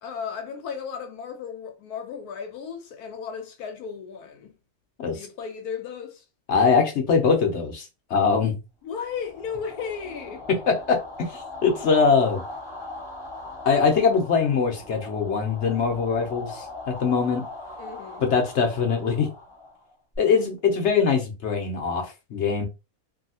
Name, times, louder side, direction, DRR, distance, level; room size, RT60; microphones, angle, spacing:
voice 1, 0.0-4.5 5.1-6.2 8.8-10.4 17.8-18.2, left 6 dB, 80° left, 1.1 m, -35 dB
voice 2, 6.5-8.6 10.5-12.4 13.7-17.4 18.2-19.3 20.2-22.7, left 5 dB, 55° left, 0.9 m, -22 dB
sound 1, 9.0-20.2, left 2 dB, 20° left, 0.8 m, -40 dB
2.7 x 2.7 x 2.7 m
omnidirectional pair, 1.6 m